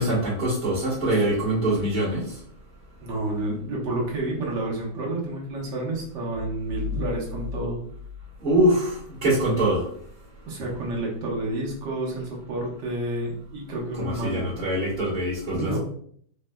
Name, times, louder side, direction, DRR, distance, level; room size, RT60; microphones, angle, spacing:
voice 1, 0.0-2.2 8.4-9.8 14.0-15.8, right 1 dB, 35° right, -12 dB, 1.4 m, -23 dB
voice 2, 3.0-7.8 10.4-14.5 15.5-15.8, right 2 dB, 80° right, -3 dB, 1.7 m, -30 dB
sound 1, 6.3-8.9, left 6 dB, 60° right, 1.3 m, -36 dB
4.5 x 3.3 x 2.3 m, 0.62 s
omnidirectional pair, 1.8 m